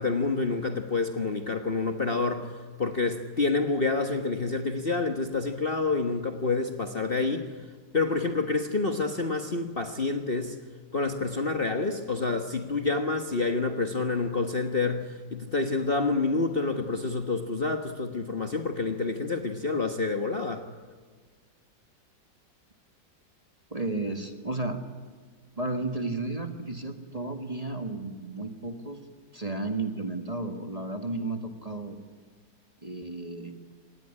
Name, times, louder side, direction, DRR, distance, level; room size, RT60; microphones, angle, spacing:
voice 1, 0.0-2.5 2.8-7.5 7.9-10.5 10.9-20.7, left 3 dB, 35° left, 6 dB, 1.4 m, -28 dB
voice 2, 23.7-24.8 25.6-29.0 29.3-32.0 32.8-33.5, right 2 dB, 20° right, 6 dB, 1.7 m, -33 dB
26.0 x 20.0 x 10.0 m, 1.5 s
omnidirectional pair, 2.0 m